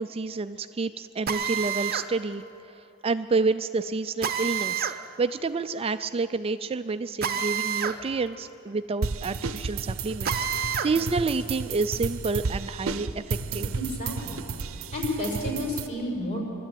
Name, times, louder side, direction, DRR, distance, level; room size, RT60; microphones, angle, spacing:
voice 1, 0.0-4.9 5.2-13.7, right 3 dB, 30° right, 10 dB, 0.4 m, -29 dB
Drill, 1.3-2.1 4.2-5.0 7.2-8.0 8.3-8.4 10.2-10.9, right 7 dB, 45° right, 0.9 m, -28 dB
sound 1, 9.0-15.9, right 4 dB, 70° right, 0.7 m, -32 dB
voice 2, 13.9-14.4 14.9-16.5, left 1 dB, 35° left, -2 dB, 5.7 m, -31 dB
24.0 x 13.0 x 9.2 m, 2.8 s
head